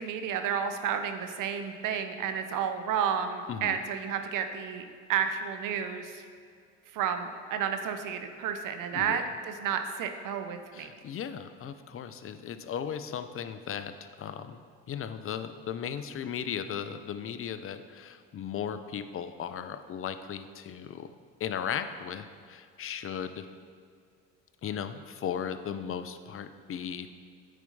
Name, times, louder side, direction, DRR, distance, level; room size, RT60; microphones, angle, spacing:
voice 1, 0.0-6.2 6.9-10.9, right 7 dB, 60° right, 7 dB, 0.9 m, -31 dB
voice 2, 10.7-21.1 21.4-23.5 24.6-27.1, left 8 dB, 35° left, 11 dB, 0.6 m, -36 dB
9.2 x 4.5 x 5.4 m, 2.2 s
hypercardioid pair, 70°, 36 cm